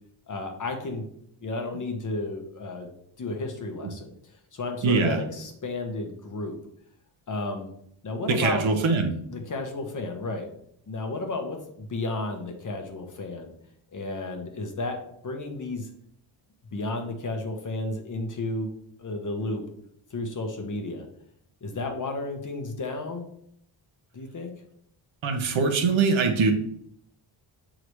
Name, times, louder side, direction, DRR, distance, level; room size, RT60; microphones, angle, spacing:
voice 1, 0.3-1.1 1.4-2.9 3.2-4.1 4.5-6.5 7.3-7.7 8.0-8.7 9.3-10.5 10.9-13.5 13.9-15.9 16.7-18.7 19.0-19.6 20.1-21.0 21.6-23.3 24.1-24.5, left 2 dB, 40° left, 4 dB, 1.1 m, -32 dB
voice 2, 4.8-5.2 8.3-9.1 25.2-26.5, right 4 dB, 70° right, 4 dB, 1.1 m, -22 dB
8.0 x 3.9 x 3.1 m, 0.69 s
wide cardioid pair, 150°, 48 cm